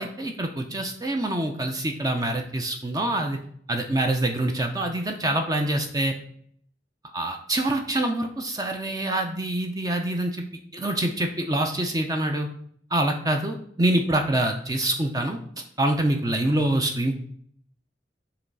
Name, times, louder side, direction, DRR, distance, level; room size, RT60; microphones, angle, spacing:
voice 1, 0.0-3.4 3.7-6.1 7.1-10.4 10.7-12.5 12.9-15.4 15.8-17.2, right 1 dB, 20° right, 4 dB, 0.5 m, -25 dB
5.7 x 3.1 x 5.3 m, 0.62 s
head